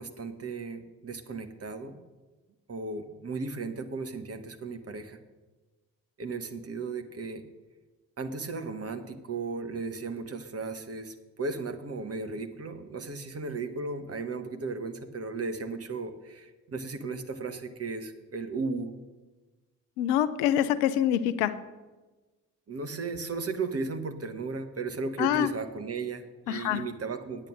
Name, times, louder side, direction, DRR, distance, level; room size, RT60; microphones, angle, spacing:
voice 1, 0.0-2.0 2.7-5.2 6.2-7.4 8.2-18.9 22.7-27.5, right 4 dB, 30° right, 7 dB, 1.1 m, -35 dB
voice 2, 20.0-21.5 25.2-25.5 26.5-26.8, left 11 dB, 65° left, 14 dB, 0.7 m, -25 dB
8.8 x 8.3 x 6.4 m, 1.2 s
figure-of-eight pair, 40°, 49 cm